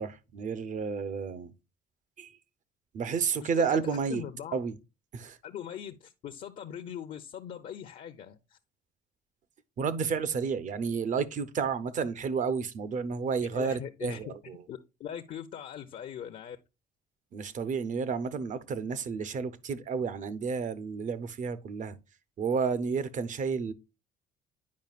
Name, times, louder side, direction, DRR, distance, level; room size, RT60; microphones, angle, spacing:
voice 1, 0.0-1.5 2.2-2.4 2.9-4.2 4.5-4.7 5.1-5.4 9.8-14.6 17.3-22.0 22.4-23.7, right 5 dB, 50° right, 0.8 m, -31 dB
voice 2, 3.4-4.6 5.4-8.6 13.4-14.3 14.7-16.6, left 9 dB, 55° left, 0.7 m, -41 dB
9.5 x 5.0 x 2.4 m
cardioid pair, 110°, 17 cm